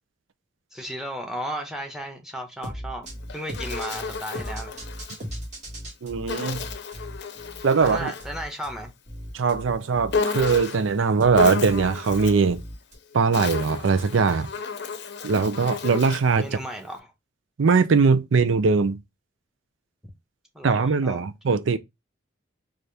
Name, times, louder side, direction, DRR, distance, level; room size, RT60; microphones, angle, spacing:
voice 1, 0.7-4.7 7.8-8.9 16.4-17.1 20.5-21.3, equal, 5° right, 0.9 m, -35 dB
sound 1, 2.6-12.9, equal, 40° right, 1.8 m, -38 dB
Insect, 3.0-5.2 6.3-8.4 10.1-10.9 11.3-12.5 13.1-16.4, left 5 dB, 65° left, 0.6 m, -32 dB
voice 2, 6.0-6.6 7.6-8.1 9.3-12.6 13.1-14.5 15.2-16.5 17.6-19.0 20.6-21.8, right 5 dB, 85° right, 0.5 m, -21 dB
4.2 x 2.5 x 3.2 m
head